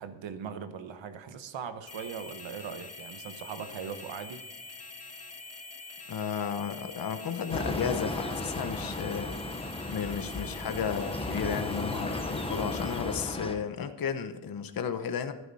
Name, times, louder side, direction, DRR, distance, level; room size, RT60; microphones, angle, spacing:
voice 1, 0.0-4.4, right 7 dB, 90° right, 9 dB, 1.2 m, -40 dB
sound 1, 1.9-13.3, left 3 dB, 35° left, 1.6 m, -45 dB
voice 2, 6.1-9.4 9.6-15.3, left 7 dB, 50° left, 9 dB, 1.0 m, -33 dB
sound 2, 7.5-13.5, left 2 dB, 15° left, 1.0 m, -35 dB
15.0 x 9.7 x 4.2 m, 1.1 s
wide cardioid pair, 160°, 44 cm